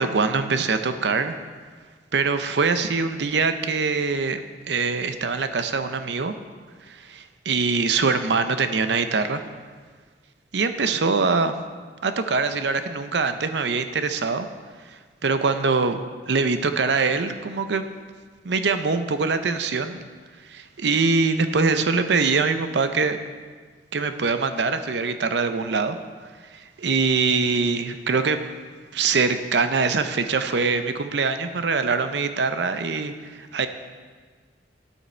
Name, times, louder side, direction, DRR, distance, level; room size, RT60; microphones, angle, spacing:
voice 1, 0.0-1.4 2.1-4.4 4.7-6.3 6.9-9.4 10.5-11.5 12.0-14.5 15.2-16.0 16.3-17.9 18.4-20.0 20.5-23.2 23.9-26.0 26.8-28.4 28.9-33.7, right 4 dB, 75° right, 9 dB, 0.6 m, -23 dB
10.0 x 8.2 x 4.4 m, 1.5 s
head